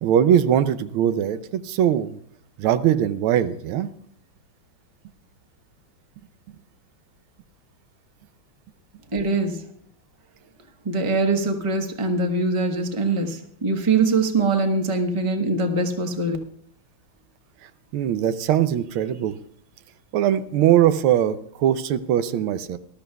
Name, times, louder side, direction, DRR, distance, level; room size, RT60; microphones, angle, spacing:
voice 1, 0.0-2.2 2.6-3.9 17.6-19.4 20.1-22.8, right 10 dB, 90° right, 12 dB, 1.5 m, -21 dB
voice 2, 9.1-9.6 10.8-16.4, right 3 dB, 20° right, 4 dB, 0.9 m, -23 dB
20.0 x 13.0 x 2.3 m, 0.68 s
omnidirectional pair, 2.3 m